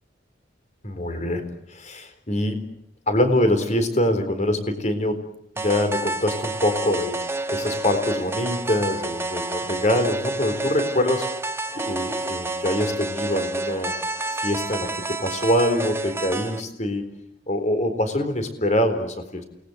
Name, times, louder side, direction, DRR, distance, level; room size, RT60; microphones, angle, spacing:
voice 1, 0.8-2.8 3.1-5.2 5.6-7.2 7.5-11.3 11.7-13.9 14.3-17.1 17.5-19.4, left 1 dB, 40° left, 8 dB, 4.1 m, -24 dB
sound 1, 5.6-16.6, right 2 dB, 15° right, 1.2 m, -29 dB
29.0 x 20.5 x 8.1 m, 0.77 s
head